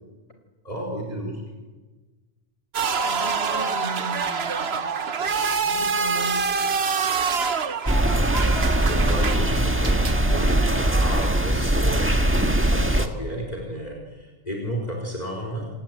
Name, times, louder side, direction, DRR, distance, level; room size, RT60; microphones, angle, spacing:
voice 1, 0.6-1.4 8.8-12.2 12.6-15.7, equal, 35° left, 0 dB, 4.5 m, -32 dB
sound 1, 2.7-11.3, right 5 dB, 65° right, 1.3 m, -26 dB
voice 2, 3.0-6.5, right 1 dB, 80° left, 5 dB, 5.4 m, -37 dB
sound 2, 7.9-13.1, right 1 dB, 10° right, 1.6 m, -21 dB
29.0 x 18.5 x 9.4 m, 1.3 s
omnidirectional pair, 1.2 m